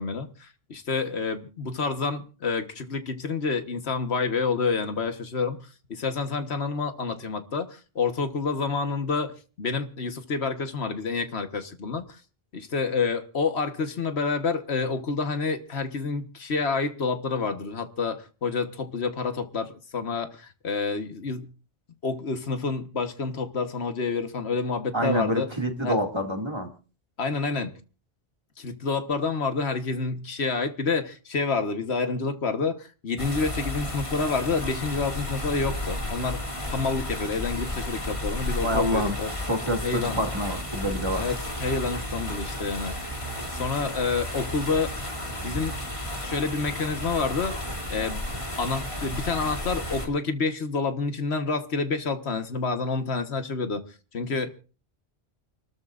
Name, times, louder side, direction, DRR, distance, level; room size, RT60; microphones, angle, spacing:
voice 1, 0.0-5.6 5.9-12.2 12.5-21.5 22.0-25.5 25.8-26.0 27.2-27.7 28.6-36.4 36.7-39.3 39.8-40.2 41.2-43.1 43.5-45.0 45.4-45.7 46.2-47.6 47.9-48.2 48.6-53.8 54.1-54.5, left 4 dB, 75° left, 1.6 m, -28 dB
voice 2, 24.9-26.7 38.6-39.2 39.5-41.3, equal, 25° right, 2.3 m, -27 dB
sound 1, 33.2-50.1, left 1 dB, 30° left, 2.9 m, -33 dB
29.0 x 13.5 x 2.5 m
omnidirectional pair, 1.1 m